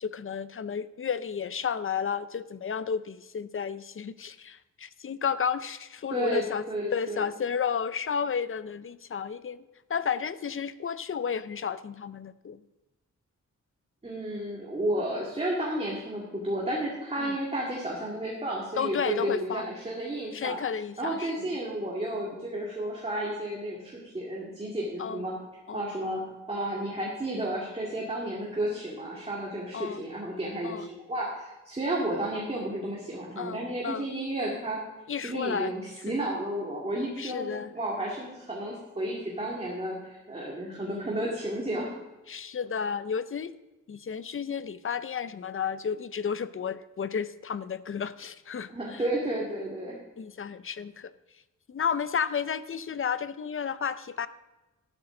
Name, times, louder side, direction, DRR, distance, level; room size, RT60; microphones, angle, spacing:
voice 1, 0.0-6.6 6.9-9.6 9.9-12.6 17.2-17.4 18.8-19.7 20.3-21.5 25.0-25.2 25.7-25.9 29.7-30.0 30.6-30.9 33.4-34.1 35.1-35.7 37.2-37.7 42.3-43.5 43.9-49.0 50.2-51.1 51.7-54.3, left 7 dB, 45° left, 14 dB, 0.5 m, -32 dB
voice 2, 6.1-7.2 14.0-20.6 21.0-25.3 25.7-26.2 26.5-34.8 35.2-41.9 48.7-50.0, right 1 dB, 20° right, -4 dB, 2.2 m, -32 dB
13.5 x 12.0 x 3.8 m, 1.1 s
wide cardioid pair, 135°, 31 cm